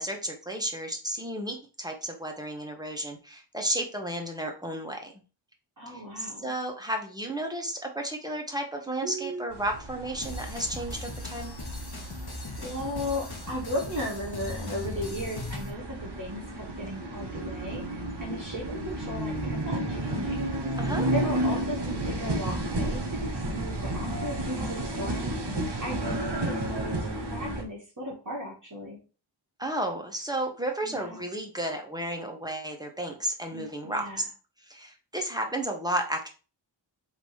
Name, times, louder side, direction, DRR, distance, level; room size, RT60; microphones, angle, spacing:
voice 1, 0.0-5.1 5.9-11.5 20.8-21.1 25.7-25.8 29.6-34.2 34.6-36.3, right 1 dB, 10° right, 2 dB, 1.2 m, -33 dB
voice 2, 5.8-6.5 9.0-9.4 12.6-20.5 21.1-29.0 30.8-31.2 33.5-34.2, equal, 40° right, -4 dB, 1.4 m, -36 dB
sound 1, 9.5-27.6, right 1 dB, 60° right, 1.1 m, -32 dB
sound 2, 10.2-15.7, left 2 dB, 50° left, 1.2 m, -39 dB
3.7 x 2.9 x 4.8 m, 0.34 s
wide cardioid pair, 60°, 47 cm